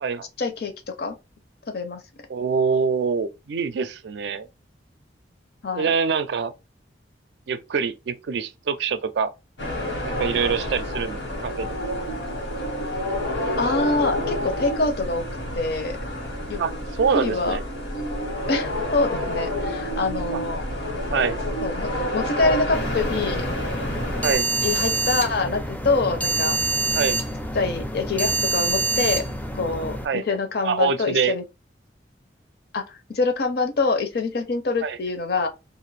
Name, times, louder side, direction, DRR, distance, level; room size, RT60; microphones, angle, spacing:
voice 1, 0.4-1.1 1.7-2.0 5.6-5.9 13.6-15.3 15.6-16.0 16.5-16.6 17.1-17.6 18.5-20.6 21.6-23.5 24.6-26.6 27.5-29.2 29.5-31.4 32.7-35.5, left 3 dB, 60° left, 0.6 m, -25 dB
voice 2, 2.3-4.5 5.7-6.5 7.5-9.3 10.1-11.7 16.6-16.7 17.0-17.6 20.3-20.4 21.1-21.4 24.2-24.5 26.9-27.2 30.0-30.2 30.6-31.4 34.8-35.0, right 5 dB, 65° right, 0.4 m, -24 dB
sound 1, 9.6-24.3, left 1 dB, 90° left, 1.3 m, -29 dB
sound 2, 22.7-30.1, right 2 dB, 10° left, 0.4 m, -26 dB
2.5 x 2.5 x 3.2 m
head